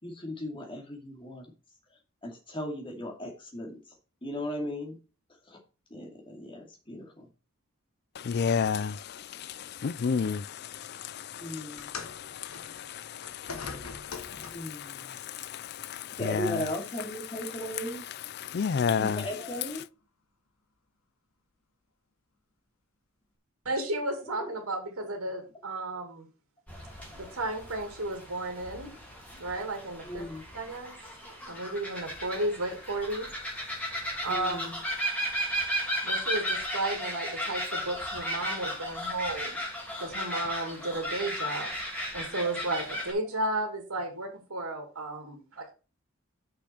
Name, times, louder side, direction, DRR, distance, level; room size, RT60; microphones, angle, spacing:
voice 1, 0.0-1.5 2.2-3.8 4.2-5.0 5.9-7.2 11.4-11.9 14.3-15.0 16.2-18.0 19.0-19.8 30.1-30.4 34.3-34.7, equal, 25° left, 2.4 m, -37 dB
voice 2, 8.3-8.9 9.8-10.4 16.2-16.6 18.5-19.2, left 6 dB, 50° left, 0.4 m, -27 dB
sound 1, 11.8-14.8 15.8-16.0 16.8-16.9, left 4 dB, 80° left, 1.6 m, -42 dB
voice 3, 23.6-26.3 27.1-28.9 29.4-30.3 30.5-30.9 31.5-33.3 34.2-34.7 36.0-39.6 40.0-41.7 42.1-45.7, right 2 dB, 75° right, 2.3 m, -33 dB
sound 2, 26.7-43.1, equal, 5° left, 3.0 m, -35 dB
6.3 x 6.0 x 5.8 m
head